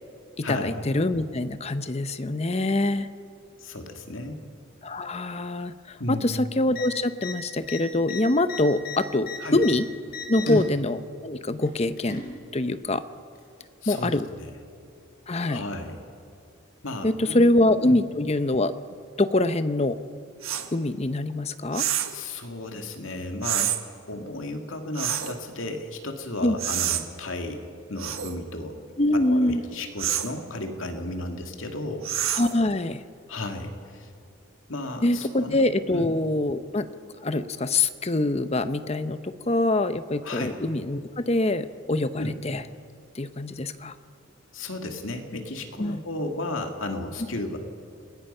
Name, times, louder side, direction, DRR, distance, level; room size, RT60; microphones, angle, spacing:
voice 1, 0.4-3.1 4.8-9.9 10.3-12.2 12.5-13.0 13.9-14.3 15.3-15.6 17.0-18.7 19.2-20.0 20.7-21.9 26.4-26.5 29.0-29.6 32.3-33.0 35.0-36.9 37.2-39.2 39.5-42.6 43.1-43.9 45.8-46.0, left 2 dB, 30° left, 11 dB, 0.7 m, -24 dB
voice 2, 3.6-4.4 6.0-6.3 9.4-9.6 10.5-10.6 13.8-14.5 15.4-16.0 16.8-17.5 17.8-18.0 22.1-23.7 24.1-27.6 27.9-28.8 29.3-32.1 33.3-34.1 34.7-35.6 35.9-36.1 40.2-40.5 42.2-42.4 44.5-47.6, left 2 dB, 70° left, 4 dB, 2.2 m, -33 dB
sound 1, 6.7-6.9 7.2-7.3 7.6-9.7 10.1-10.6 11.6-12.3 13.4-13.5, left 6 dB, 45° left, 4.5 m, -37 dB
sound 2, 20.4-20.7 21.7-22.2 23.4-23.8 25.0-25.4 26.6-27.0 28.0-28.3 30.0-30.3 32.0-32.6, right 11 dB, 80° right, 1.5 m, -27 dB
28.5 x 20.0 x 5.6 m, 2.4 s
head